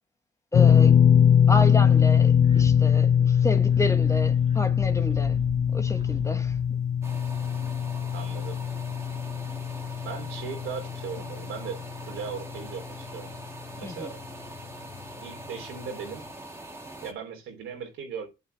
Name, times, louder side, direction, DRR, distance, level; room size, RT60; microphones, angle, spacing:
sound 1, 0.5-12.8 13.0-13.3 14.9-15.0, left 8 dB, 35° left, 0.4 m, -22 dB
voice 1, 0.5-1.0 1.5-5.4 5.7-6.6 13.8-14.1, left 1 dB, 15° left, 1.3 m, -31 dB
sound 2, 0.8-6.7, right 2 dB, 35° right, 1.9 m, -42 dB
sound 3, 7.0-17.1, right 1 dB, 15° right, 2.3 m, -43 dB
voice 2, 8.1-8.6 10.0-13.3 13.7-14.2 15.2-16.2 17.0-18.3, right 6 dB, 85° right, 3.3 m, -38 dB
8.4 x 8.1 x 3.4 m
cardioid pair, 90°, 20 cm